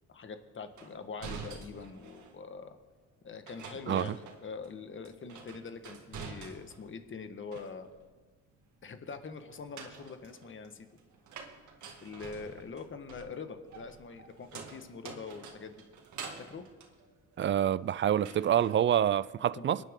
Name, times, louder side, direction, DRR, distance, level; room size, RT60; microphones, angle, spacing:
voice 1, 0.1-2.8 3.2-7.9 8.8-10.9 12.0-15.7 16.5-16.6 19.6-19.9, left 5 dB, 40° left, 1.5 m, -44 dB
sound 1, 0.8-2.4 3.5-4.8 5.0-6.9 7.2-8.1 9.5-17.8 18.2-18.8, right 5 dB, 75° right, 2.1 m, -47 dB
voice 2, 17.4-19.8, right 10 dB, 40° right, 0.4 m, -27 dB
24.0 x 10.5 x 3.7 m
cardioid pair, 90°, 30 cm